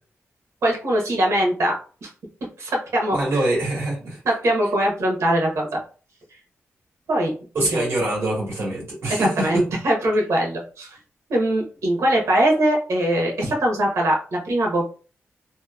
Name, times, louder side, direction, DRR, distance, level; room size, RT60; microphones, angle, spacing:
voice 1, 0.6-1.7 2.0-2.1 2.6-3.4 4.2-5.8 7.1-7.3 7.7-7.9 9.1-11.0 11.3-14.8, right 1 dB, 80° right, -1 dB, 0.9 m, -22 dB
voice 2, 3.1-4.2 7.5-9.6, right 1 dB, 60° right, -4 dB, 1.5 m, -24 dB
2.8 x 2.0 x 2.3 m, 0.39 s
wide cardioid pair, 160°, 5 cm